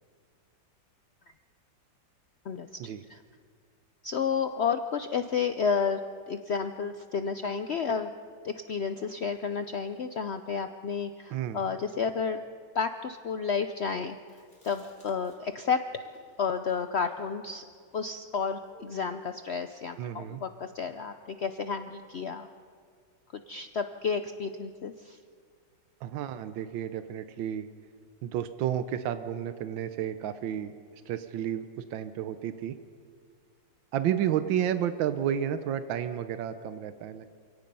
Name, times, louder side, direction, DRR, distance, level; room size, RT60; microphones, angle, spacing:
voice 1, 2.4-3.2 4.0-6.0 6.3-8.1 8.4-12.4 12.7-14.2 14.6-15.8 16.4-17.6 17.9-22.5 23.5-25.2, left 6 dB, 85° left, 8 dB, 0.5 m, -31 dB
voice 2, 11.3-11.6 20.0-20.4 26.0-27.7 28.2-30.7 31.1-32.7 33.9-37.3, right 10 dB, 90° right, 11 dB, 1.5 m, -31 dB
Chewing mastication, 14.2-15.6 15.9-19.3, equal, 40° left, 4.9 m, -57 dB
27.5 x 18.0 x 5.4 m, 2.1 s
omnidirectional pair, 2.0 m